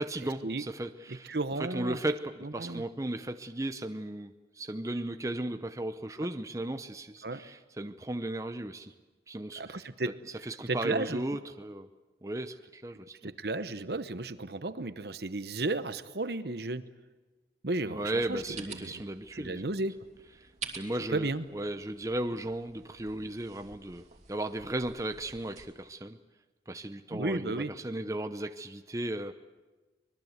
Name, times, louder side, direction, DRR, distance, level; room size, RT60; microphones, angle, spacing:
voice 1, 0.0-8.9 9.3-10.1 10.4-11.9 12.2-13.3 17.9-19.7 20.8-26.2 26.7-29.3, right 1 dB, 15° right, 8 dB, 0.7 m, -36 dB
voice 2, 1.1-2.0 2.4-2.8 7.2-7.4 9.6-11.2 13.2-16.8 17.6-18.4 18.7-19.0 19.3-19.9 21.1-21.4 27.1-27.7, right 2 dB, 60° right, 12 dB, 1.0 m, -34 dB
sound 1, 18.1-25.7, right 5 dB, 40° right, 2.7 m, -49 dB
24.5 x 21.5 x 8.1 m, 1.2 s
head